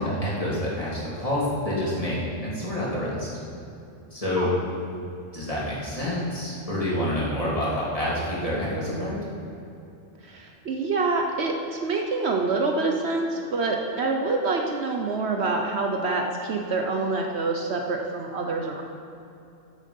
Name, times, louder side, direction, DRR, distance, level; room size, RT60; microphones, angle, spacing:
voice 1, 0.0-3.3 4.1-4.5 5.3-9.2, left 1 dB, 30° left, -7 dB, 3.2 m, -27 dB
voice 2, 10.3-18.8, right 3 dB, 60° right, 2 dB, 1.1 m, -26 dB
14.0 x 7.5 x 5.4 m, 2.7 s
omnidirectional pair, 1.3 m